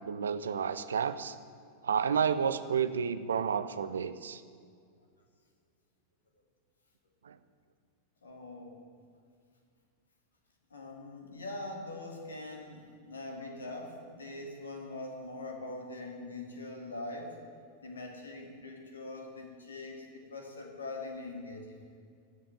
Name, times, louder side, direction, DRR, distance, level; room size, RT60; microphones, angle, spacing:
voice 1, 0.0-1.4 1.8-4.4 7.2-7.4, right 7 dB, 70° right, 13 dB, 0.6 m, -31 dB
voice 2, 8.2-8.8 10.7-17.4 17.8-21.8, left 2 dB, 70° left, 2 dB, 2.5 m, -42 dB
16.0 x 7.6 x 9.5 m, 2.2 s
figure-of-eight pair, 90°, 0 cm